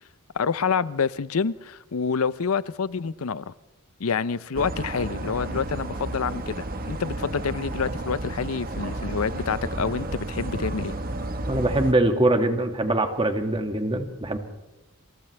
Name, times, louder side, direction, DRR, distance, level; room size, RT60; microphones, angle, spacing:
voice 1, 0.3-3.5 4.0-10.9, left 5 dB, 75° left, 0.6 m, -27 dB
sound 1, 4.6-11.9, right 1 dB, 40° right, 1.4 m, -32 dB
voice 2, 11.5-14.4, right 1 dB, 25° right, 2.1 m, -23 dB
28.0 x 27.0 x 3.4 m
head